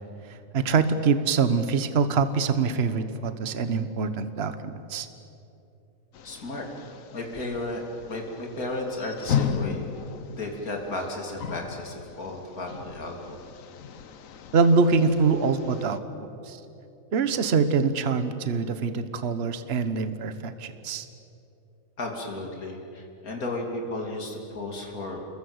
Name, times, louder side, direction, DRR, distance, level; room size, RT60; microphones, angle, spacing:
voice 1, 0.3-5.1 14.5-16.0 16.5-16.6 17.1-21.1, right 5 dB, 50° right, 11 dB, 1.3 m, -24 dB
sound 1, 6.1-16.0, left 7 dB, 70° left, 1.3 m, -35 dB
voice 2, 6.2-6.7 7.1-9.9 10.4-13.4 22.0-25.2, left 2 dB, 85° left, 1 dB, 3.4 m, -34 dB
28.0 x 22.0 x 8.0 m, 2.8 s
omnidirectional pair, 1.5 m